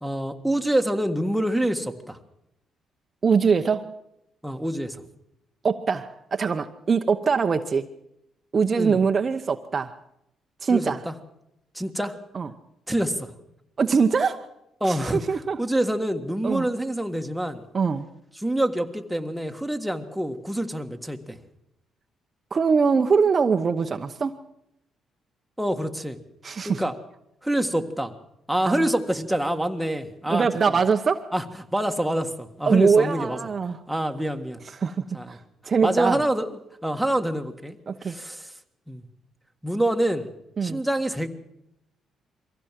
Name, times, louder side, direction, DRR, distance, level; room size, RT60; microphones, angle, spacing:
voice 1, 0.0-2.2 4.4-5.0 8.7-9.0 10.7-11.1 11.7-12.2 12.9-13.3 14.8-15.2 15.6-17.6 18.4-21.4 25.6-26.2 26.6-27.0 27.4-28.1 28.5-30.5 31.3-31.4 31.7-33.4 33.9-34.6 35.1-35.4 35.8-37.7 38.0-38.5 38.9-39.0 39.6-40.3 40.6-41.3, right 1 dB, ahead, 4 dB, 1.7 m, -26 dB
voice 2, 3.2-3.9 5.6-7.9 8.5-9.9 10.6-11.0 12.3-12.5 13.8-14.5 14.9-15.6 16.4-16.7 17.7-18.0 22.5-24.3 26.4-26.8 28.6-28.9 30.3-31.3 32.7-33.8 34.8-35.4 35.6-36.2 37.9-38.2 40.6-40.8, right 5 dB, 40° right, 7 dB, 1.0 m, -22 dB
23.0 x 15.5 x 7.6 m, 0.82 s
cardioid pair, 90°, 0 cm